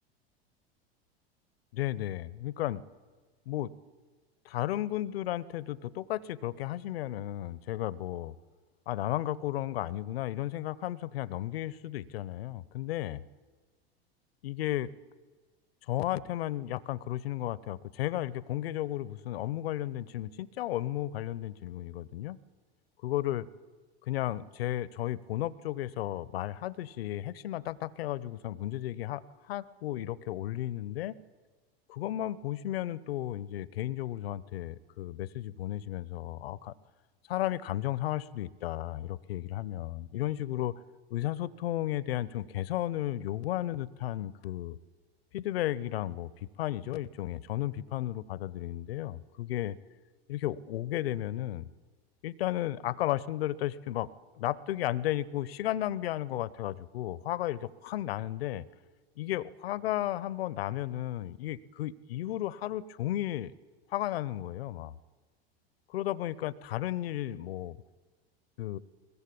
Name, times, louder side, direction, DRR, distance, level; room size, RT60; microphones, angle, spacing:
voice 1, 1.7-2.8 3.5-3.7 4.4-8.3 8.9-13.2 14.4-14.9 15.9-22.4 23.0-23.5 24.1-31.2 31.9-36.7 37.3-40.7 41.1-44.8 45.3-49.8 50.3-51.7 52.2-54.1 54.3-58.6 59.2-63.5 63.9-64.9 65.9-67.8 68.6-68.8, left 14 dB, 70° left, 20 dB, 0.9 m, -34 dB
22.5 x 20.0 x 8.6 m, 1.4 s
hypercardioid pair, 90°, 31 cm